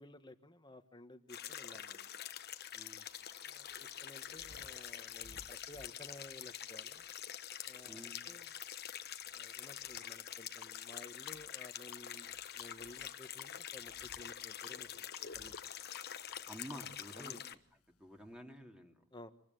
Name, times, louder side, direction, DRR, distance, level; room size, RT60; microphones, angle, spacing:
voice 1, 0.0-2.1 3.5-7.0 7.6-8.5 9.3-15.1 15.3-15.6 17.2-17.4 19.1-19.3, left 1 dB, 20° left, 9 dB, 1.5 m, -55 dB
sound 1, 1.3-17.6, left 10 dB, 45° left, 1.2 m, -46 dB
sound 2, 2.7-18.4, left 6 dB, 85° left, 1.6 m, -59 dB
voice 2, 2.7-3.1 7.8-8.2 16.5-17.4 18.0-19.0, equal, 5° right, 3 dB, 2.6 m, -50 dB
26.0 x 20.5 x 9.3 m, 0.65 s
head